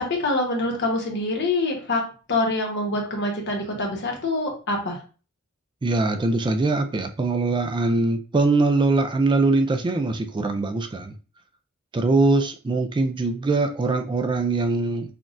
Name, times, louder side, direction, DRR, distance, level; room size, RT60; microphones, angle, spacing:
voice 1, 0.0-2.0 2.3-5.0, left 2 dB, 55° left, 1 dB, 1.1 m, -25 dB
voice 2, 5.8-11.1 11.9-15.2, right 3 dB, 25° right, 7 dB, 0.3 m, -22 dB
5.9 x 2.3 x 2.5 m, 0.36 s
head